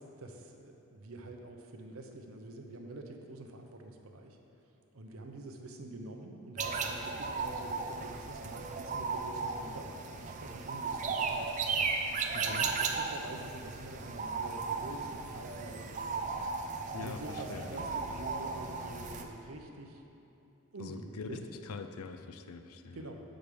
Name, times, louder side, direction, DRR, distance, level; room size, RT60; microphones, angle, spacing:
voice 1, 0.0-4.4 4.9-20.0 20.7-21.4 22.9-23.2, right 2 dB, 75° right, 3 dB, 0.8 m, -47 dB
sound 1, 6.6-19.2, right 4 dB, 35° right, 0.4 m, -36 dB
voice 2, 12.3-12.7 16.9-18.2 20.8-23.1, left 4 dB, 85° left, 8 dB, 0.5 m, -44 dB
6.2 x 5.2 x 6.8 m, 2.8 s
head